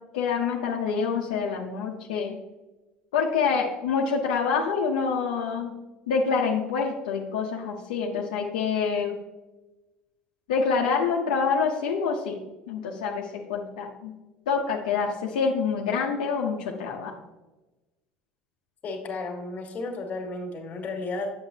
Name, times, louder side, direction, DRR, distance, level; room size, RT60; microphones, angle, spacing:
voice 1, 0.1-2.4 3.1-5.7 6.1-9.2 10.5-12.4 12.7-14.1 14.5-17.1, left 5 dB, 85° left, -1 dB, 0.9 m, -26 dB
voice 2, 18.8-21.3, left 3 dB, 40° left, 3 dB, 1.9 m, -33 dB
7.9 x 7.1 x 2.9 m, 1.1 s
hypercardioid pair, 85°, 4 cm